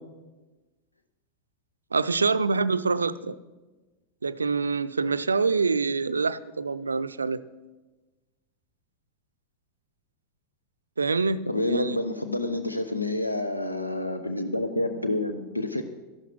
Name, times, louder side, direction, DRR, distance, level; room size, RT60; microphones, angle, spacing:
voice 1, 1.9-3.4 4.2-7.4 11.0-11.4 11.7-12.0, right 4 dB, 75° right, 14 dB, 0.5 m, -25 dB
voice 2, 11.5-15.8, left 2 dB, 85° left, 8 dB, 0.7 m, -28 dB
13.5 x 11.5 x 6.0 m, 1.2 s
figure-of-eight pair, 90°, 0 cm